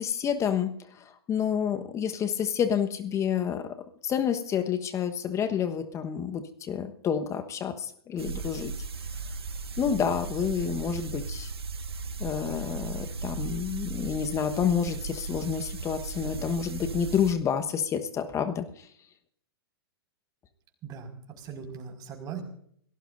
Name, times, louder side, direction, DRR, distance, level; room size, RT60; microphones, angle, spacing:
voice 1, 0.0-3.8 4.0-8.7 9.8-11.5 12.2-18.9, left 8 dB, 25° left, 8 dB, 1.2 m, -29 dB
sound 1, 8.2-17.3, right 4 dB, 80° right, 1.5 m, -36 dB
voice 2, 20.8-22.4, right 7 dB, 30° right, 3 dB, 5.3 m, -40 dB
28.0 x 18.0 x 2.6 m, 0.65 s
figure-of-eight pair, 110°, 13 cm